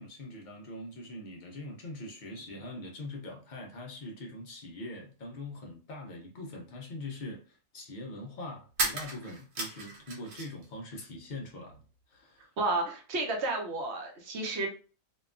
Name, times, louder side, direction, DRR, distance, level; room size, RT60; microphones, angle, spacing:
voice 1, 0.0-11.8 12.1-12.5, left 2 dB, 85° left, 0.4 m, -43 dB
sound 1, 8.7-10.7 11.0-11.8, right 2 dB, 85° right, 1.4 m, -35 dB
voice 2, 12.6-14.7, right 2 dB, 55° right, 0.8 m, -31 dB
2.8 x 2.2 x 2.4 m
omnidirectional pair, 1.6 m